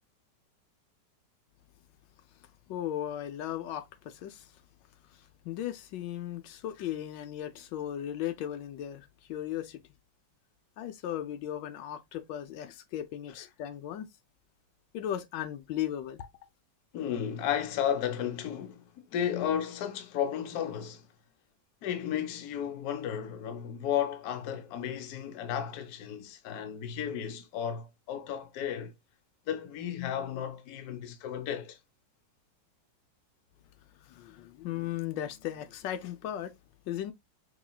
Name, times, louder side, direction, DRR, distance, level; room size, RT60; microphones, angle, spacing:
voice 1, 2.7-4.5 5.1-5.2 5.4-9.8 10.8-14.1 14.9-16.3 34.0-36.6 36.9-37.1, left 11 dB, 85° left, 1.3 m, -36 dB
voice 2, 16.9-21.1 21.8-28.9 29.5-31.8, left 9 dB, 65° left, 1.1 m, -33 dB
4.9 x 3.1 x 2.2 m
omnidirectional pair, 1.9 m